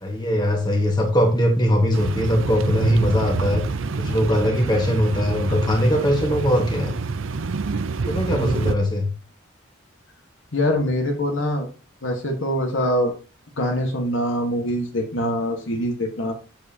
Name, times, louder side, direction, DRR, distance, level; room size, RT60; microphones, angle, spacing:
voice 1, 0.0-3.6 4.0-6.9 8.1-9.1, equal, 20° left, 2 dB, 1.4 m, -21 dB
sound 1, 1.9-8.7, right 4 dB, 75° right, 0.6 m, -27 dB
voice 2, 8.3-8.7 10.5-11.7 12.0-13.1 13.6-16.3, equal, 75° left, 1 dB, 1.6 m, -24 dB
7.6 x 7.3 x 2.9 m, 0.34 s
head